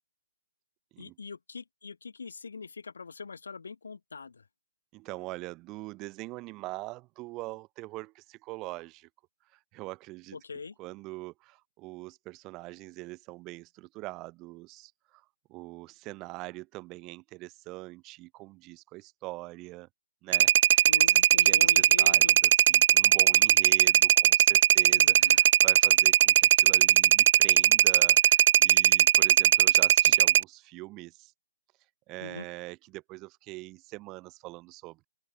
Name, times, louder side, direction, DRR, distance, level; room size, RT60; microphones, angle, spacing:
voice 1, 1.0-4.4 10.3-10.7 20.9-22.4 25.0-25.4 32.2-32.4, left 5 dB, 80° left, 3.4 m, -42 dB
voice 2, 4.9-9.1 9.5-10.4 10.8-15.2 15.5-19.9 20.2-31.3 32.1-35.1, right 21 dB, 20° right, 2.0 m, -43 dB
sound 1, 20.3-30.4, right 12 dB, 40° right, 0.3 m, -20 dB
open air
hypercardioid pair, 155°, 0 cm